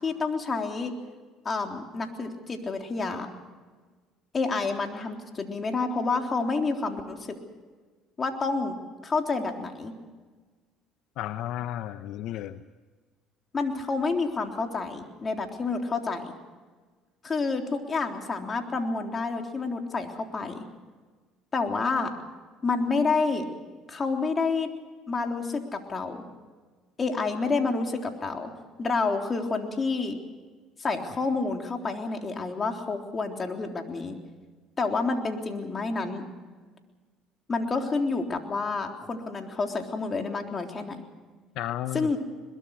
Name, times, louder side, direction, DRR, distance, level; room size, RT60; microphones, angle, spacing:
voice 1, 0.0-1.0 1.5-3.3 4.3-7.4 8.2-8.8 9.0-9.9 13.5-16.4 17.2-20.6 21.5-22.1 22.6-23.5 23.9-24.7 25.1-26.3 27.0-28.5 28.8-30.2 30.8-34.2 34.8-36.3 37.5-41.0 41.9-42.2, left 4 dB, 30° left, 3 dB, 3.6 m, -29 dB
voice 2, 11.2-12.6 41.6-42.1, left 13 dB, 70° left, 12 dB, 0.7 m, -33 dB
22.0 x 21.5 x 6.5 m, 1.4 s
supercardioid pair, 85°, 0 cm